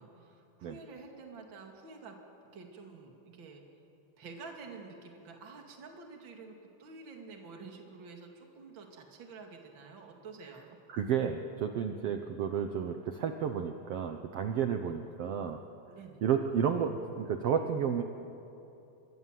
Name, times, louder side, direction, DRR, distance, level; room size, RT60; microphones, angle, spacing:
voice 1, 0.0-3.6 4.2-10.8 11.9-12.2 15.9-16.2, right 4 dB, 35° right, 2 dB, 2.8 m, -49 dB
voice 2, 10.9-15.6 16.2-18.0, right 7 dB, 75° right, 6 dB, 1.4 m, -31 dB
26.0 x 22.5 x 7.6 m, 2.8 s
omnidirectional pair, 4.1 m